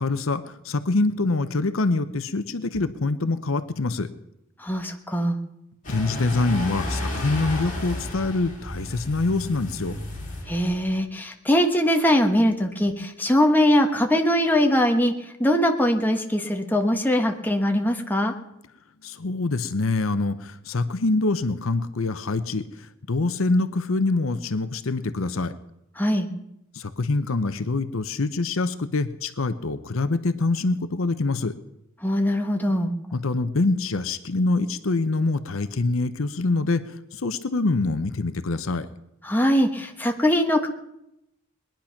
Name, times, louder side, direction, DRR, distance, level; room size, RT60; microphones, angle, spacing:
voice 1, 0.0-4.1 5.9-10.0 19.0-25.5 26.7-31.5 33.1-38.9, left 3 dB, 70° left, 12 dB, 0.8 m, -25 dB
voice 2, 4.6-5.4 10.5-15.1 15.4-18.3 26.0-26.3 32.0-32.9 39.2-40.7, equal, 10° left, 3 dB, 1.3 m, -21 dB
sound 1, 5.8-10.9, left 1 dB, 40° left, 3.1 m, -33 dB
21.0 x 10.5 x 5.8 m, 0.85 s
head